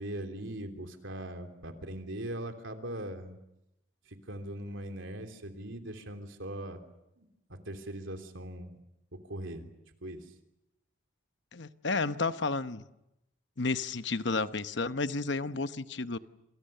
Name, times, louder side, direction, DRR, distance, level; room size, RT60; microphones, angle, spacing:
voice 1, 0.0-3.4 4.0-6.8 7.2-8.7 9.2-9.7 10.0-10.3, right 1 dB, 70° right, 5 dB, 3.2 m, -40 dB
voice 2, 11.5-12.8 13.6-16.2, left 3 dB, 60° left, 11 dB, 1.0 m, -31 dB
28.0 x 27.5 x 6.8 m, 0.88 s
head